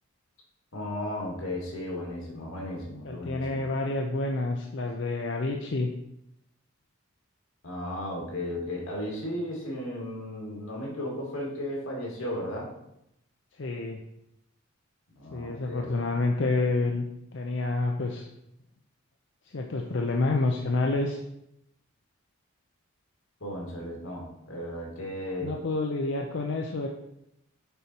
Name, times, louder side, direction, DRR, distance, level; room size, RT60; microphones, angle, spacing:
voice 1, 0.7-3.6 7.6-12.7 15.2-15.9 23.4-25.6, left 1 dB, 85° left, -2 dB, 2.2 m, -35 dB
voice 2, 3.0-5.9 13.6-14.0 15.3-17.0 17.3-18.2 19.5-21.2 25.4-26.9, left 2 dB, 60° left, 2 dB, 0.5 m, -28 dB
7.0 x 4.3 x 4.4 m, 0.82 s
head